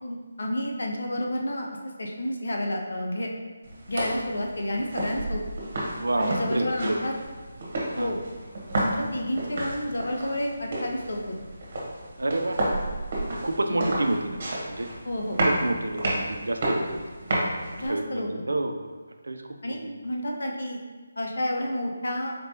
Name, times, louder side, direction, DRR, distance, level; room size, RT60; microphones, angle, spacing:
voice 1, 0.0-3.3 3.9-5.4 6.2-7.1 8.0-8.2 8.8-11.4 13.7-13.9 15.0-15.4 17.8-18.3 19.6-20.8 21.2-22.3, left 1 dB, 75° left, 1 dB, 0.7 m, -30 dB
sound 1, 3.6-17.9, right 1 dB, 45° right, 1.1 m, -31 dB
voice 2, 6.0-7.0 8.0-8.2 12.2-12.6 13.2-14.9 15.4-17.0 17.7-18.9 19.2-19.9, right 2 dB, 85° right, 5 dB, 0.4 m, -29 dB
4.2 x 3.4 x 2.7 m, 1.4 s
figure-of-eight pair, 160°, 0 cm